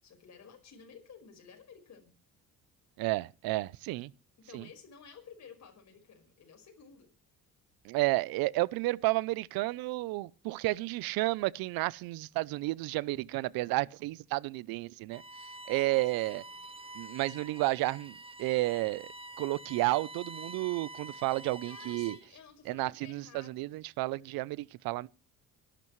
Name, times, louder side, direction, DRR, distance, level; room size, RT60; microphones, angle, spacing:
voice 1, 0.0-2.1 4.4-7.1 15.8-16.6 21.6-23.7, left 6 dB, 50° left, 5.1 m, -54 dB
voice 2, 3.0-4.1 4.5-4.7 7.8-15.2 15.7-16.4 16.9-19.1 19.4-22.2 22.7-25.1, right 20 dB, 85° right, 0.6 m, -31 dB
Bowed string instrument, 15.1-22.4, right 2 dB, 15° right, 1.0 m, -47 dB
25.5 x 11.5 x 3.1 m
cardioid pair, 90°, 35 cm